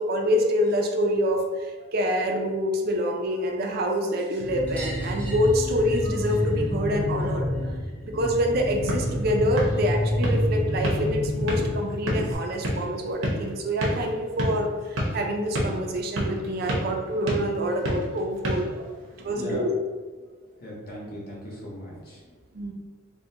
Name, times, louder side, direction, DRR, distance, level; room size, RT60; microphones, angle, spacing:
voice 1, 0.0-7.8 8.1-18.9 19.2-19.7 22.5-22.7, equal, 45° right, 2 dB, 0.4 m, -26 dB
sound 1, 4.4-12.3, equal, 80° left, 1.4 m, -28 dB
sound 2, 4.7-9.8 10.1-11.2 12.6-12.7 12.9-13.0 13.3-13.4 14.7-14.8 15.1-15.2 15.5-15.6 16.8-16.9 17.7-17.8, equal, 10° left, 0.5 m, -47 dB
sound 3, 8.5-19.4, equal, 80° right, 0.7 m, -31 dB
voice 2, 19.3-19.7 20.6-22.6, equal, 45° left, -4 dB, 0.8 m, -38 dB
3.5 x 2.1 x 2.7 m, 1.4 s
head